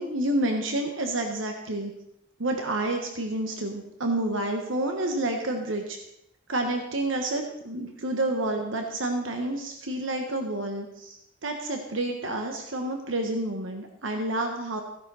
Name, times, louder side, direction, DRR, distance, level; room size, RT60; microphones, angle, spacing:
voice 1, 0.0-1.9 2.4-6.0 6.5-14.8, right 1 dB, 90° right, 3 dB, 1.4 m, -29 dB
15.5 x 11.0 x 4.2 m, 0.81 s
head